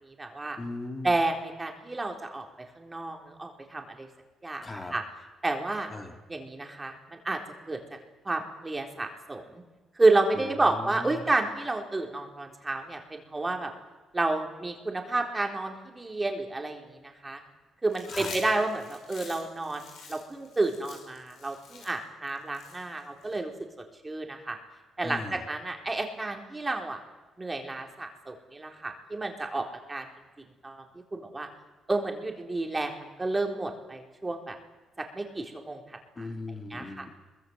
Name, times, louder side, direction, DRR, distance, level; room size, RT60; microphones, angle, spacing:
voice 1, 0.0-0.6 1.0-2.5 2.8-4.1 4.4-5.0 5.4-5.9 6.3-7.4 7.7-7.8 8.2-9.6 9.9-13.7 14.1-17.4 17.8-23.5 24.0-24.6 25.0-27.0 27.4-30.1 30.6-30.8 31.1-31.5 31.9-34.6 35.0-36.3 36.7-37.0, right 2 dB, 20° right, 3 dB, 3.8 m, -30 dB
voice 2, 0.6-1.1 4.6-4.9 5.9-6.2 10.6-11.2 18.1-18.3 25.0-25.4 36.2-37.1, left 2 dB, 25° left, 4 dB, 3.4 m, -38 dB
Chewing mastication, 17.9-23.4, left 5 dB, 80° left, 6.0 m, -46 dB
22.5 x 21.5 x 8.0 m, 1.2 s
cardioid pair, 90°, 0 cm